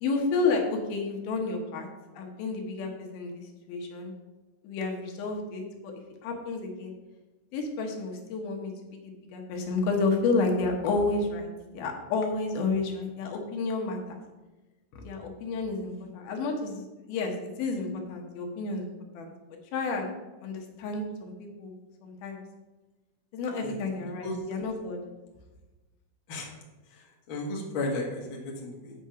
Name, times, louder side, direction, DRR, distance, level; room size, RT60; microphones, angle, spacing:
voice 1, 0.0-1.9 2.1-4.1 4.6-5.9 6.2-6.9 7.5-11.5 11.7-14.2 14.9-18.9 19.1-19.3 19.7-20.1 20.4-21.7 22.0-22.4 23.3-25.0, left 3 dB, 75° left, 2 dB, 2.9 m, -31 dB
voice 2, 27.3-28.9, left 2 dB, 45° left, -1 dB, 1.8 m, -33 dB
7.7 x 6.3 x 5.6 m, 1.1 s
omnidirectional pair, 4.4 m